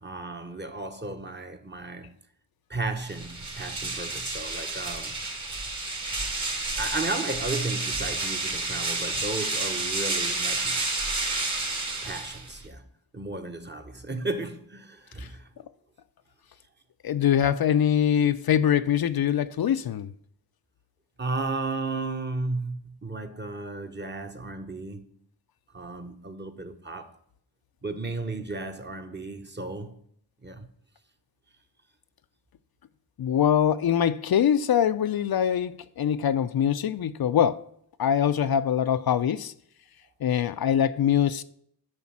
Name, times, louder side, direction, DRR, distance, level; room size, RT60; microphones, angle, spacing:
voice 1, 0.0-2.1 2.7-5.2 6.8-10.8 12.0-12.8 13.1-15.5 21.2-25.1 25.7-27.1 27.8-30.0 30.4-30.7, right 2 dB, 25° right, 1.3 m, -34 dB
sound 1, 3.0-12.7, right 3 dB, 45° right, 2.5 m, -30 dB
voice 2, 17.0-20.1 33.2-37.6 38.0-39.5 40.2-41.4, left 9 dB, 60° left, 0.6 m, -23 dB
9.5 x 5.3 x 7.3 m
cardioid pair, 80°, 41 cm